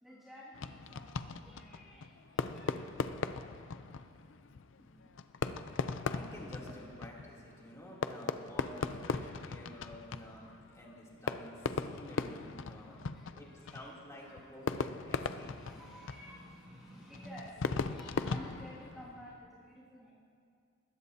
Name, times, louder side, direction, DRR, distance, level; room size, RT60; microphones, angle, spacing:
voice 1, 0.0-2.9 4.8-5.1 13.1-14.7 15.1-20.1, equal, ahead, -10 dB, 2.1 m, -53 dB
Fireworks, 0.5-19.4, left 4 dB, 70° left, 0.5 m, -39 dB
voice 2, 5.7-13.0 13.3-15.5, equal, 15° left, -5 dB, 2.8 m, -51 dB
20.5 x 15.5 x 2.7 m, 2.3 s
head